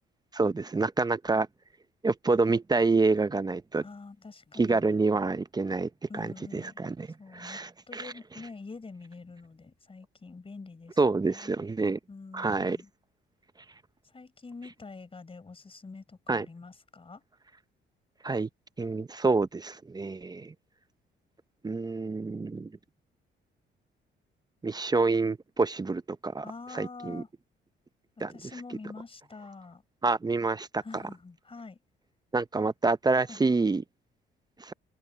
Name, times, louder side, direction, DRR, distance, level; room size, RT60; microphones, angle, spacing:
voice 1, 0.3-1.5 2.0-3.8 4.6-7.1 7.3-8.1 11.0-12.0 12.3-12.8 16.3-16.5 18.2-18.5 18.8-20.5 21.6-22.7 24.6-26.4 26.7-27.2 28.2-28.3 30.0-30.8 32.3-33.8 34.6-34.7, right 3 dB, 20° right, 0.6 m, -27 dB
voice 2, 3.8-5.0 6.1-6.8 7.2-7.6 7.9-11.5 12.1-12.9 14.0-17.2 26.4-27.3 28.3-29.8 30.8-31.8 33.2-33.4, left 4 dB, 30° left, 5.2 m, -46 dB
cardioid pair, 90°, 20 cm